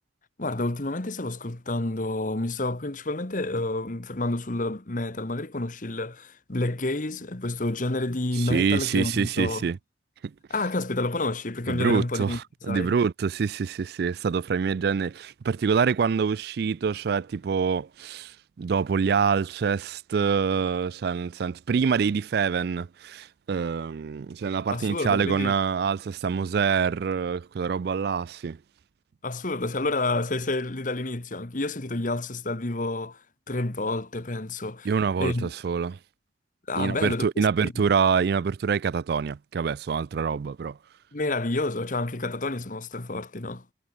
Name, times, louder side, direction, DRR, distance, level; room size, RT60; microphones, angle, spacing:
voice 1, 0.4-9.7 10.5-12.4 12.7-12.9 24.7-25.5 29.2-34.9 35.2-35.5 36.7-37.7 41.1-43.6, left 2 dB, 45° left, 1.4 m, -29 dB
voice 2, 8.4-9.8 10.2-10.3 11.7-28.6 34.8-36.0 36.8-40.8, right 6 dB, 60° right, 0.4 m, -26 dB
head